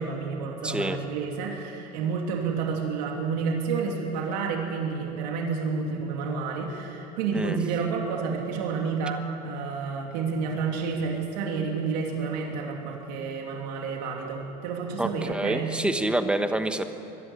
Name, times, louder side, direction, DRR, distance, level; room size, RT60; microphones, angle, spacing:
voice 1, 0.0-15.8, right 5 dB, 85° right, 0 dB, 3.0 m, -30 dB
voice 2, 0.6-1.0 7.3-7.6 15.0-16.8, right 1 dB, 5° right, 8 dB, 1.2 m, -27 dB
23.0 x 12.5 x 10.0 m, 2.8 s
supercardioid pair, 130°, 21 cm